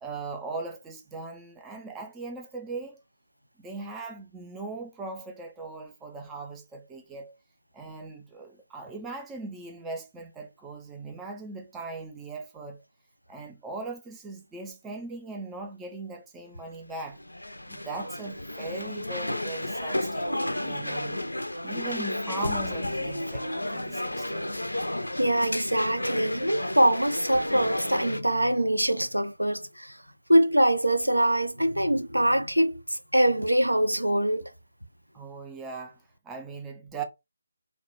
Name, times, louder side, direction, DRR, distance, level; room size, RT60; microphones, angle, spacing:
voice 1, 0.0-3.0 3.6-7.4 7.7-12.8 13.3-17.2 17.7-21.2 21.6-24.5 35.1-37.0, right 3 dB, 10° right, 0.3 m, -39 dB
sound 1, 16.6-28.2, left 1 dB, 80° left, 0.4 m, -32 dB
voice 2, 24.9-30.0 30.3-34.4, right 1 dB, 85° right, 0.4 m, -24 dB
2.1 x 2.1 x 2.9 m
figure-of-eight pair, 150°, 0 cm